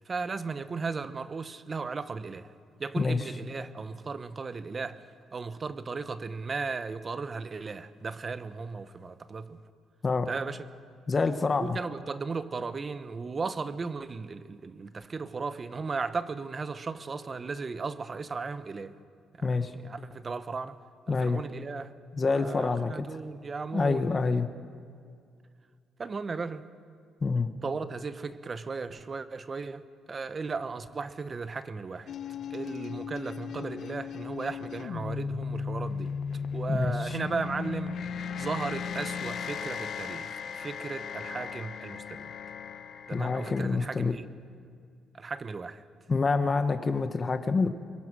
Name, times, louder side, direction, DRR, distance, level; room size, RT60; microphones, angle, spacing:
voice 1, 0.1-2.5 2.8-5.0 5.3-9.6 10.3-10.6 11.6-19.0 19.3-20.8 21.1-21.9 22.3-24.3 26.0-26.6 27.6-29.8 30.1-32.1 32.5-36.1 36.5-38.0 38.4-42.3 43.1-44.3 45.1-45.8, right 4 dB, 35° right, 1.0 m, -36 dB
voice 2, 11.1-11.8 19.4-19.7 21.1-21.4 22.1-23.0 23.7-24.5 27.2-27.5 36.7-37.2 43.1-44.1 46.1-47.7, left 4 dB, 35° left, 1.1 m, -27 dB
sound 1, 32.1-43.6, left 6 dB, 65° left, 1.1 m, -36 dB
24.0 x 22.0 x 6.2 m
cardioid pair, 90°, 0 cm